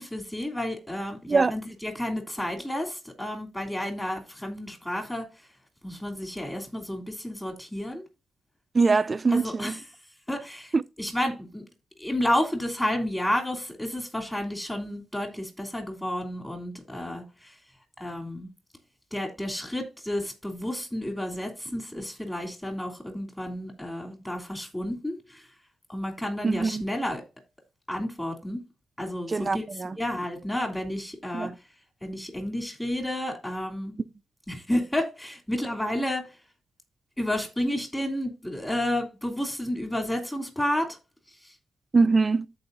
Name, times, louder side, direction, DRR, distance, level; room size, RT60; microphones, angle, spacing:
voice 1, 0.0-5.2 5.8-8.0 9.3-9.8 10.3-11.6 12.0-17.5 18.0-18.5 19.1-25.4 25.9-27.2 27.9-28.6 29.0-29.6 30.0-31.5 32.0-33.9 34.5-36.3 37.2-40.9, left 1 dB, 15° left, 3.0 m, -31 dB
voice 2, 8.7-9.8 10.7-10.8 26.4-26.8 29.3-30.0 31.3-31.5 41.9-42.5, right 4 dB, 35° right, 0.5 m, -23 dB
14.0 x 4.7 x 2.6 m
cardioid pair, 70°, 0 cm